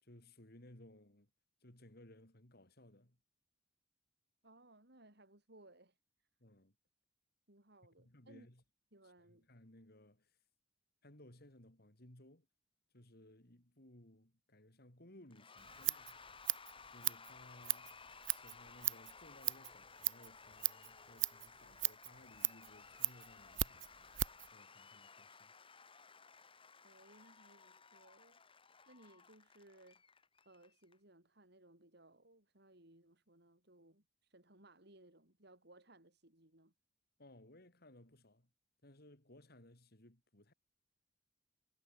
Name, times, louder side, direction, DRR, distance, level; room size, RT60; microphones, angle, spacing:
voice 1, 0.0-1.3 1.6-3.2 6.4-6.7 8.0-8.6 9.0-10.4 11.0-12.5 12.9-16.2 16.9-18.0 18.3-23.9 24.5-25.5 37.2-38.5 38.8-40.5, left 1 dB, 55° left, 4.4 m, -61 dB
voice 2, 4.4-6.3 7.5-8.5 8.9-9.5 26.8-28.4 28.9-30.0 30.5-36.7, right 1 dB, 60° right, 7.3 m, -63 dB
Cheering / Applause / Crowd, 15.3-30.9, left 5 dB, 30° left, 2.9 m, -58 dB
Scissors, 15.6-24.5, right 16 dB, 80° right, 0.6 m, -39 dB
head